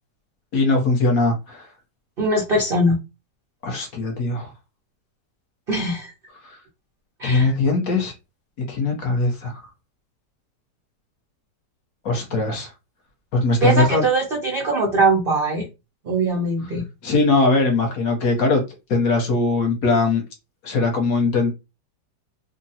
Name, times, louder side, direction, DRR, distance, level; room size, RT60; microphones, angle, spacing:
voice 1, 0.5-1.7 3.6-4.5 6.4-6.6 7.2-8.1 8.7-9.5 12.0-12.7 13.3-14.1 17.0-18.6 18.9-20.2 20.6-21.5, left 3 dB, 60° left, 1.0 m, -20 dB
voice 2, 2.2-3.0 5.7-6.1 7.2-7.5 13.6-15.7 16.0-16.8, right 2 dB, 65° right, 0.5 m, -21 dB
3.6 x 2.0 x 2.6 m
omnidirectional pair, 1.9 m